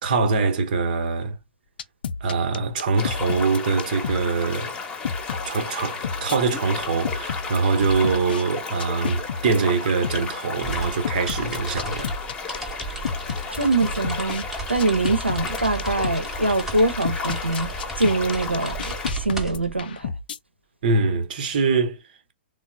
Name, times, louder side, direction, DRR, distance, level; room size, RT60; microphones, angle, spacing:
voice 1, 0.0-1.4 2.2-4.7 5.4-12.2 20.8-22.0, right 4 dB, 45° right, 0.9 m, -23 dB
sound 1, 1.8-4.2 4.5-4.6 5.0-6.4 7.0-8.4 8.8-9.6 10.0-10.2 11.0-14.4 14.8-16.2 16.5-16.6 17.0-20.4, left 6 dB, 55° left, 0.5 m, -31 dB
sound 2, 2.9-19.1, left 4 dB, 15° left, 1.0 m, -33 dB
sound 3, 10.6-19.8, right 3 dB, 5° right, 0.9 m, -35 dB
voice 2, 13.5-17.7 18.0-18.8 19.1-20.1, right 2 dB, 85° right, 0.7 m, -23 dB
3.9 x 2.0 x 3.4 m
figure-of-eight pair, 110°, 6 cm